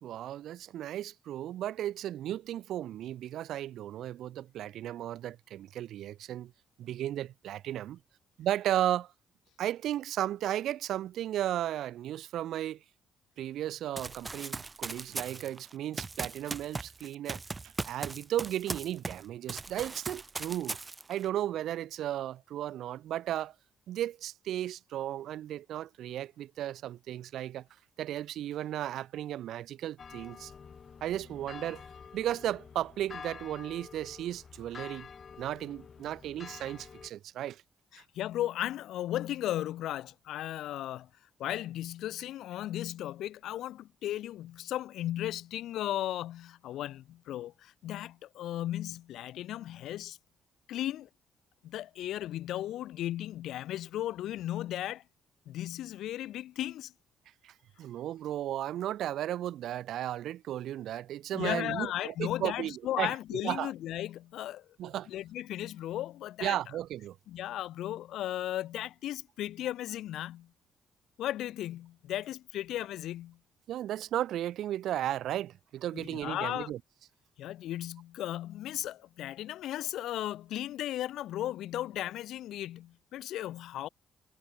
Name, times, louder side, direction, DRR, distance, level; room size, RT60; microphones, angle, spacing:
voice 1, 0.0-6.5 6.8-8.0 8.4-9.1 9.6-12.8 13.4-17.4 17.9-20.8 21.1-23.5 23.9-27.7 28.0-30.5 31.0-31.8 32.1-35.1 35.4-37.6 37.9-38.0 57.4-63.7 64.8-65.1 66.4-67.2 73.7-76.8, right 12 dB, 75° right, 1.8 m, -35 dB
Run, 14.0-19.2 19.5-21.2, right 3 dB, 25° right, 1.6 m, -39 dB
sound 1, 30.0-37.1, left 6 dB, 45° left, 6.3 m, -48 dB
voice 2, 37.9-41.1 41.4-50.2 50.7-51.1 51.6-55.0 55.5-56.9 61.3-64.7 65.1-66.6 67.3-70.5 71.2-73.4 75.9-76.7 77.4-83.9, left 13 dB, 80° left, 5.4 m, -36 dB
cardioid pair, 90°, 0 cm